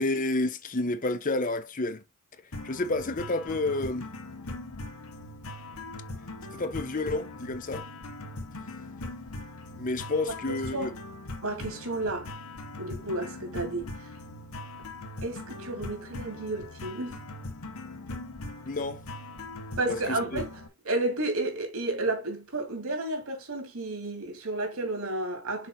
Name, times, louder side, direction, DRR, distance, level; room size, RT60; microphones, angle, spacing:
voice 1, 0.0-2.0 2.6-4.1 6.5-7.9 9.7-10.9 18.6-19.0 19.9-20.4, left 2 dB, 35° left, 0.6 m, -30 dB
sound 1, 2.5-20.7, left 2 dB, 80° left, 1.4 m, -41 dB
voice 2, 11.4-12.3 12.8-13.9 15.2-17.2 19.8-20.5 20.8-25.7, right 2 dB, 75° right, 2.9 m, -31 dB
6.6 x 4.4 x 3.9 m
head